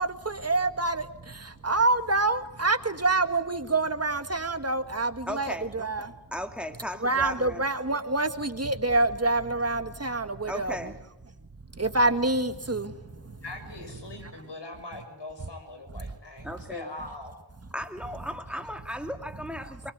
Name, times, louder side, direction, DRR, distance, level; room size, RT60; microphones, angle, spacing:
voice 1, 0.0-6.2 7.0-10.9 11.7-13.4 14.2-14.3 19.6-19.7, right 2 dB, 35° right, 1.6 m, -27 dB
voice 2, 5.3-5.7 6.3-7.6 10.5-10.9 16.4-16.9 17.7-19.9, equal, 5° right, 2.2 m, -36 dB
voice 3, 13.4-17.4, left 2 dB, 90° left, 6.3 m, -41 dB
23.5 x 22.5 x 8.1 m
wide cardioid pair, 65°, 41 cm